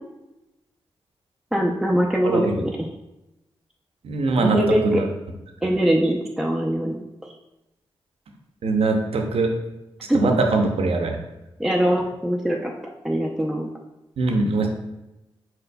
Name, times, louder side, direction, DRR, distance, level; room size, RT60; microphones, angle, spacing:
voice 1, 1.5-2.9 4.4-5.0 5.6-7.0 10.1-10.2 11.6-13.7, equal, 5° right, 0 dB, 0.5 m, -22 dB
voice 2, 2.2-2.5 4.0-4.6 4.9-5.0 5.6-5.7 8.6-9.5 10.1-11.2 14.2-14.7, right 3 dB, 70° right, 3 dB, 0.6 m, -22 dB
4.3 x 4.2 x 2.2 m, 0.96 s
supercardioid pair, 45°, 10 cm